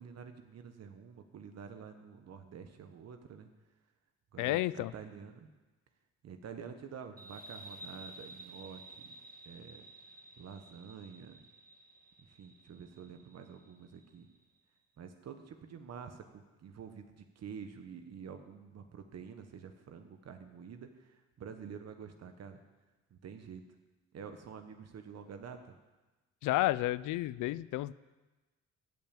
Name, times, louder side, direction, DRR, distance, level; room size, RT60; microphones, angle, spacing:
voice 1, 0.0-3.5 4.3-5.5 6.2-9.1 9.4-9.8 10.4-11.4 12.2-14.3 15.0-22.6 23.1-23.6 24.1-25.8, right 6 dB, 55° right, 7 dB, 1.1 m, -48 dB
voice 2, 4.4-4.9 26.4-27.9, left 17 dB, 85° left, 18 dB, 0.5 m, -31 dB
sound 1, 7.2-14.4, right 2 dB, 30° right, 1.5 m, -53 dB
15.5 x 5.8 x 8.8 m, 1.2 s
cardioid pair, 90°, 30 cm